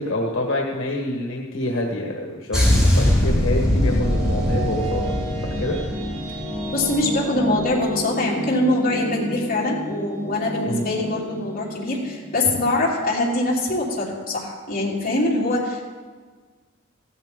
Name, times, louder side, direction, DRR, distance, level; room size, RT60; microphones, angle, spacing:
voice 1, 0.0-5.2 5.4-5.8 10.6-10.8, left 1 dB, 75° left, 1 dB, 1.4 m, -27 dB
sound 1, 2.5-7.1 7.3-7.6, left 1 dB, 5° right, 3.9 m, -21 dB
sound 2, 3.5-14.1, equal, 80° right, 3.0 m, -32 dB
voice 2, 6.7-15.8, left 2 dB, 45° left, -5 dB, 3.4 m, -23 dB
16.0 x 13.5 x 3.7 m, 1.5 s
head